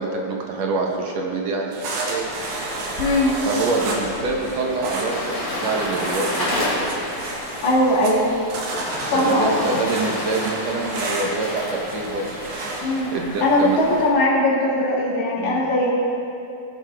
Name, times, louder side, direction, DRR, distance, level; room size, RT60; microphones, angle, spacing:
voice 1, 0.0-1.6 2.0-2.2 3.5-7.0 9.1-12.4 13.1-13.8 15.4-15.7, right 3 dB, 65° right, 0 dB, 2.2 m, -25 dB
sound 1, 1.7-13.0, right 2 dB, 90° right, 3.0 m, -32 dB
sound 2, 2.2-14.1, left 1 dB, 35° left, 2.6 m, -31 dB
voice 2, 3.0-3.3 7.6-8.3 9.1-9.5 12.8-13.1 13.4-16.0, left 1 dB, 70° left, -5 dB, 3.7 m, -19 dB
20.5 x 9.7 x 3.5 m, 2.7 s
omnidirectional pair, 3.4 m